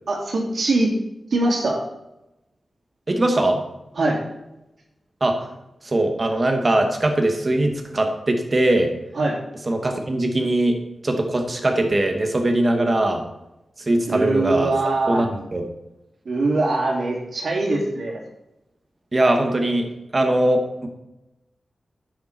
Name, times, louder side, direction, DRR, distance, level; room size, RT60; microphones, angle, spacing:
voice 1, 0.1-0.9 1.3-1.8 4.0-4.2 9.2-9.4 14.1-15.3 16.3-18.2, right 2 dB, 70° right, -1 dB, 3.5 m, -22 dB
voice 2, 3.1-3.6 5.2-5.4 5.8-8.9 9.7-10.8 11.0-13.2 13.8-14.7 15.1-15.6 19.1-19.9 20.1-20.9, right 1 dB, 35° right, 4 dB, 2.3 m, -21 dB
12.0 x 9.4 x 4.7 m, 0.91 s
wide cardioid pair, 75°, 0 cm